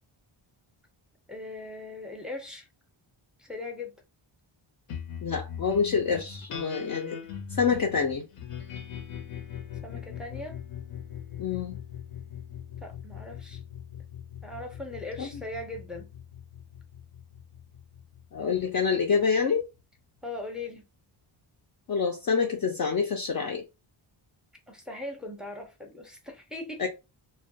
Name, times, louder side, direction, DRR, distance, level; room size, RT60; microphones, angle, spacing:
voice 1, 1.3-2.7 3.4-3.9 9.8-10.6 12.8-13.6 14.4-16.1 20.2-20.8 24.7-26.9, left 2 dB, ahead, 0.5 m, -39 dB
sound 1, 4.9-19.6, left 8 dB, 85° left, 0.7 m, -41 dB
voice 2, 5.2-7.2 7.5-8.2 11.4-11.8 15.2-15.3 18.3-19.6 21.9-23.6 26.8-26.9, left 6 dB, 45° left, 0.5 m, -26 dB
2.2 x 2.2 x 2.6 m
wide cardioid pair, 95°, 50 cm